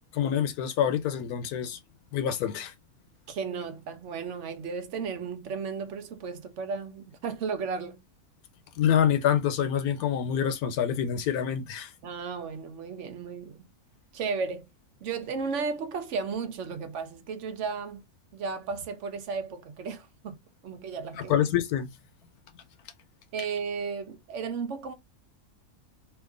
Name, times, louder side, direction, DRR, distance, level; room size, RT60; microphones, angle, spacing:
voice 1, 0.1-1.8 2.1-2.7 8.8-11.9 21.2-21.9, left 9 dB, 80° left, 1.1 m, -26 dB
voice 2, 3.3-8.0 12.0-13.6 14.1-14.7 15.0-18.0 18.3-20.4 20.6-21.4 23.3-24.9, right 5 dB, 60° right, 0.9 m, -34 dB
2.9 x 2.5 x 3.7 m
omnidirectional pair, 1.6 m